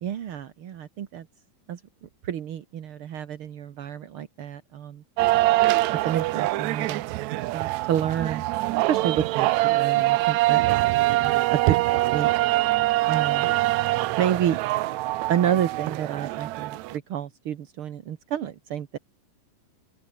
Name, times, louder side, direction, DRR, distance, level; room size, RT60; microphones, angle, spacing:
voice 1, 0.0-1.3 1.7-5.0 5.9-7.0 7.5-8.4 8.9-10.6 11.2-12.3 13.1-13.5 14.2-14.6 15.3-19.0, right 10 dB, 55° right, 1.6 m, -29 dB
sound 1, 5.2-17.0, right 18 dB, 80° right, 1.7 m, -24 dB
open air
omnidirectional pair, 3.9 m